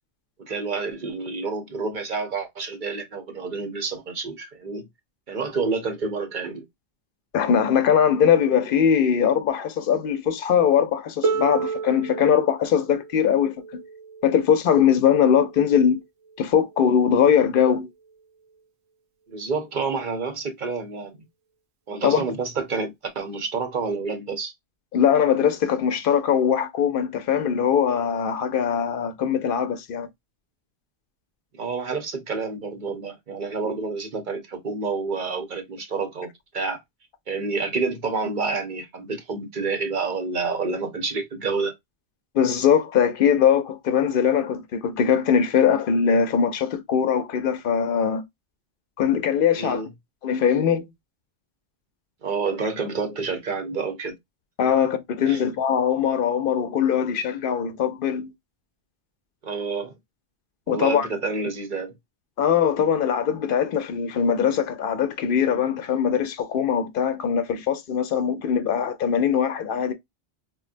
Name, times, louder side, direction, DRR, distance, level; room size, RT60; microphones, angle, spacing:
voice 1, 0.4-4.9 5.3-6.6 19.3-21.2 21.9-24.5 31.6-36.3 36.5-36.8 37.3-41.7 49.6-49.9 52.2-54.1 55.3-55.4 59.4-59.9 60.7-61.9, right 4 dB, 50° right, 0.9 m, -28 dB
voice 2, 7.3-13.8 14.2-16.0 16.4-17.9 22.0-22.2 24.9-30.1 42.3-48.2 49.0-49.8 50.2-50.8 54.6-58.3 60.7-61.1 62.4-69.9, left 8 dB, 65° left, 0.7 m, -21 dB
Harp, 11.2-17.0 18.1-18.2, right 5 dB, 90° right, 0.9 m, -32 dB
3.8 x 2.1 x 2.4 m
omnidirectional pair, 1.1 m